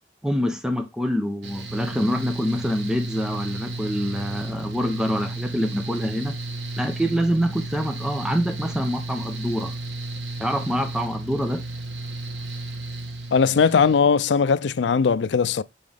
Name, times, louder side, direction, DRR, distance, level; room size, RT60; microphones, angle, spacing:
voice 1, 0.2-6.3 6.8-9.8 10.4-11.6, equal, 5° right, 0.8 m, -25 dB
Mechanical fan, 1.4-14.0, right 2 dB, 85° right, 1.3 m, -33 dB
voice 2, 13.3-15.6, left 5 dB, 75° left, 0.4 m, -19 dB
7.1 x 3.8 x 3.5 m
head